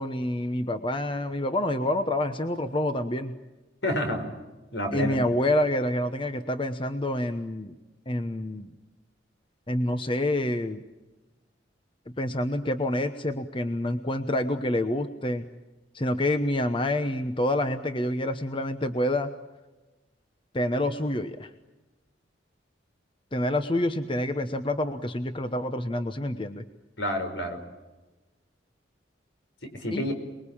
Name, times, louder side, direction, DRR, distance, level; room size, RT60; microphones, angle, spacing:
voice 1, 0.0-3.3 4.9-7.7 8.1-8.7 9.7-10.8 12.2-15.5 15.9-19.3 20.5-21.5 23.3-26.6 29.9-30.1, left 1 dB, 25° left, 9 dB, 1.0 m, -27 dB
voice 2, 3.8-4.3 4.7-5.2 27.0-27.6 29.6-30.1, equal, 70° left, 6 dB, 5.2 m, -29 dB
28.5 x 21.5 x 8.8 m, 1.1 s
head